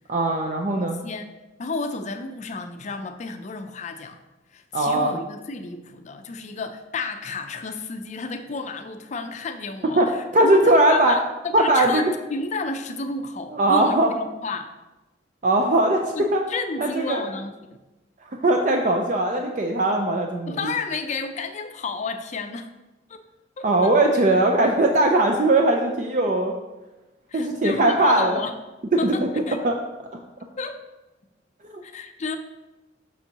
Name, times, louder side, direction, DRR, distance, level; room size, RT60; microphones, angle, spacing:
voice 1, 0.1-1.0 4.7-5.2 10.0-10.1 10.3-11.2 11.5-12.1 13.5-14.1 15.4-16.4 16.8-17.2 18.3-20.7 23.6-26.5 27.3-28.4 29.0-29.1 29.6-29.7 31.7-31.8, right 1 dB, 40° right, 2 dB, 0.4 m, -20 dB
voice 2, 0.7-1.3 1.6-4.2 4.5-12.0 12.3-14.7 16.1-17.8 20.5-22.7 23.1-23.2 23.6-24.2 27.3-28.5 29.0-29.6 30.6-30.8 31.8-32.4, left 3 dB, 35° left, 7 dB, 0.5 m, -32 dB
7.0 x 6.2 x 2.9 m, 1.1 s
head